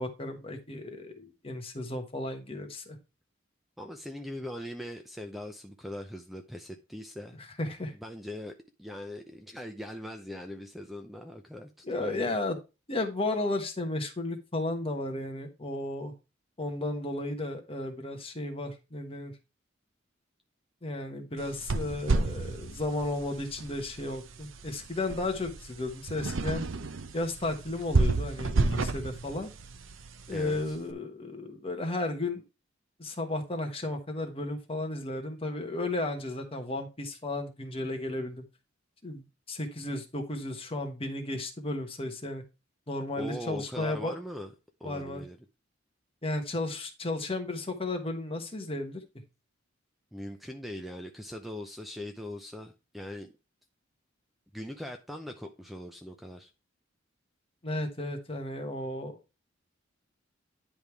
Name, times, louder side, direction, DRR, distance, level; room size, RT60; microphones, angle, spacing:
voice 1, 0.0-3.0 7.4-7.9 11.8-12.6 12.9-16.1 16.6-19.3 20.8-26.6 27.1-29.5 30.3-32.4 33.0-38.4 39.0-42.4 42.9-44.1 44.8-45.2 46.2-49.0 57.6-59.2, left 2 dB, 30° left, 1.4 m, -34 dB
voice 2, 3.8-7.4 8.0-12.4 30.3-30.8 43.2-44.5 44.8-45.4 50.1-53.3 54.5-56.5, left 1 dB, ahead, 0.6 m, -41 dB
sound 1, 21.4-30.8, right 3 dB, 80° right, 0.7 m, -32 dB
10.5 x 3.6 x 4.6 m
head